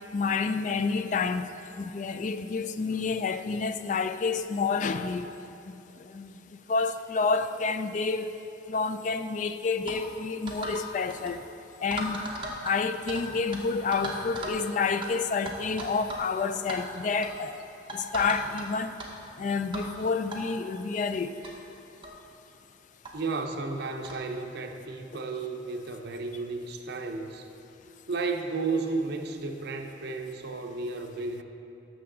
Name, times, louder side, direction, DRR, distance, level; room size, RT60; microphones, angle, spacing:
voice 1, 0.1-1.5 1.8-5.3 6.1-6.3 6.7-8.3 8.7-11.4 11.8-12.2 12.6-17.6 17.9-19.0 19.4-21.3, left 4 dB, 40° left, 0.3 m, -29 dB
sound 1, 9.9-10.0 10.5-10.8 11.1-11.3 11.9-13.2 13.5-13.6 13.9-14.6 15.0-15.1 15.5-16.3 16.5-16.8 17.2-17.4 17.9-18.6 19.0-19.1 19.7-19.9 20.3-20.4 21.1-21.2 21.4-21.5 22.0-22.2 23.0-23.1 24.0-24.2, right 1 dB, 25° right, 1.0 m, -36 dB
voice 2, 23.1-27.5 28.1-31.4, right 3 dB, 55° right, 0.7 m, -33 dB
12.5 x 6.7 x 3.8 m
head